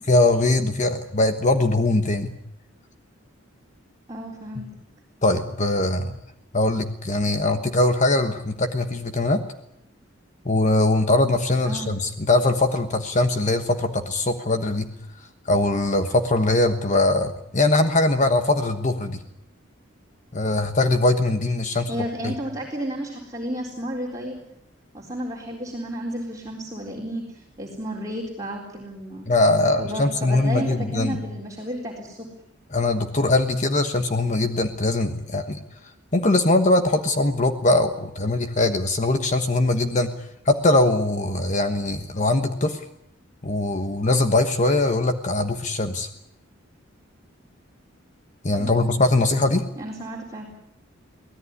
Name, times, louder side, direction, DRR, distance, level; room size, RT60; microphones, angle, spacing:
voice 1, 0.1-2.3 5.2-6.2 6.5-9.4 10.4-14.9 15.4-19.2 20.3-21.9 22.2-22.3 29.3-31.2 32.7-35.6 36.1-40.1 40.4-42.8 43.4-46.1 48.4-49.6, left 2 dB, 35° left, 7 dB, 1.2 m, -21 dB
voice 2, 4.1-4.7 11.6-12.0 21.7-24.4 24.9-29.3 29.8-32.3 48.6-49.0 49.8-50.6, equal, 15° right, -3 dB, 3.9 m, -32 dB
24.0 x 17.0 x 9.7 m, 0.79 s
head